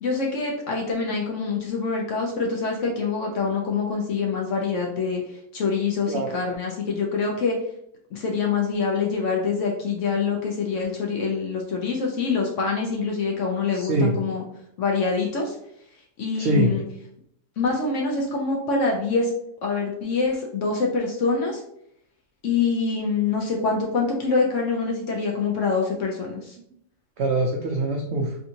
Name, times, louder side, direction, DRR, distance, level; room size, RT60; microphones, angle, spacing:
voice 1, 0.0-7.6 8.1-14.4 14.8-15.6 16.2-16.8 17.6-19.3 19.6-21.6 22.4-26.6, left 4 dB, 65° left, -1 dB, 0.8 m, -25 dB
voice 2, 13.7-14.2 16.4-16.7 27.2-28.4, right 2 dB, 80° right, 0 dB, 0.6 m, -23 dB
3.5 x 2.6 x 2.7 m, 0.72 s
omnidirectional pair, 1.7 m